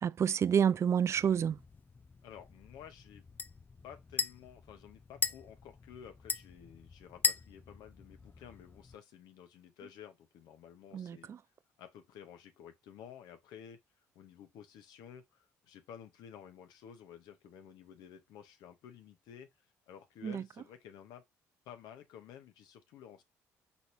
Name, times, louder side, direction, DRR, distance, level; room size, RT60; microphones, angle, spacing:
voice 1, 0.0-1.6 10.9-11.4 20.2-20.4, right 8 dB, 40° right, 0.3 m, -29 dB
sound 1, 1.2-9.0, left 4 dB, 25° left, 0.5 m, -40 dB
voice 2, 2.2-3.3 3.8-11.3 11.8-13.8 14.1-19.5 19.9-21.2 21.6-23.2, left 9 dB, 70° left, 1.0 m, -53 dB
4.5 x 4.1 x 2.6 m
hypercardioid pair, 55°, 7 cm